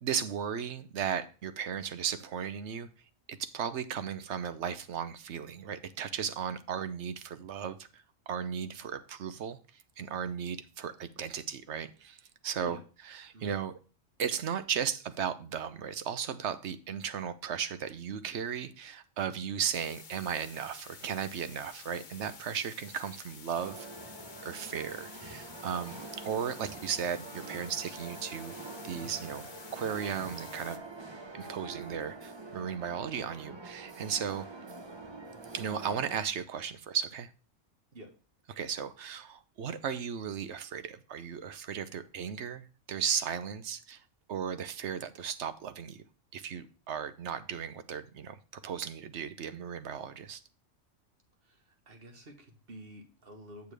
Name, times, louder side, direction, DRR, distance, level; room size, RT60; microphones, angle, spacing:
voice 1, 0.0-2.9 3.3-12.2 12.4-12.8 13.1-13.7 14.2-24.1 24.4-28.6 28.8-29.5 29.7-30.8 31.3-34.5 35.5-37.3 38.5-44.0 44.3-46.0 46.3-50.4, right 7 dB, 65° right, 1.0 m, -36 dB
sound 1, 19.7-30.8, left 6 dB, 45° left, 0.9 m, -51 dB
sound 2, 23.6-36.2, right 3 dB, 25° right, 0.9 m, -45 dB
voice 2, 51.4-53.7, right 1 dB, 50° right, 1.6 m, -50 dB
8.2 x 6.9 x 3.3 m
omnidirectional pair, 1.3 m